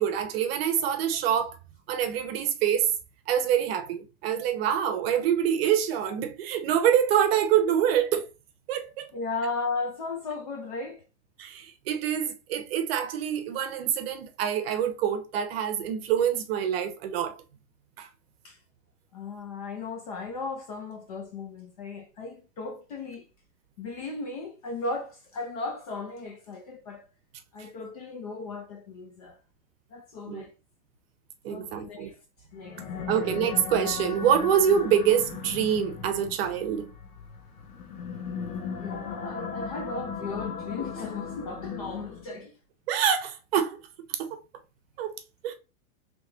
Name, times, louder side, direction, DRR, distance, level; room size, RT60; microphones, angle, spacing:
voice 1, 0.0-1.5 1.9-2.9 3.3-8.3 8.7-9.1 11.4-17.4 18.0-18.1 30.3-30.4 31.4-32.1 33.1-36.9 42.9-43.8 44.1-44.3 45.0-45.2 45.4-45.5, right 9 dB, 40° right, 0.8 m, -25 dB
voice 2, 9.1-11.0 18.4-18.6 19.1-23.3 23.8-27.1 27.5-29.4 29.9-30.5 31.5-32.1 32.5-32.8 33.1-33.3 38.7-42.5, left 3 dB, 30° left, 0.4 m, -36 dB
sound 1, 32.5-42.4, left 6 dB, 90° left, 1.3 m, -37 dB
3.4 x 3.3 x 3.8 m
supercardioid pair, 160°, 44 cm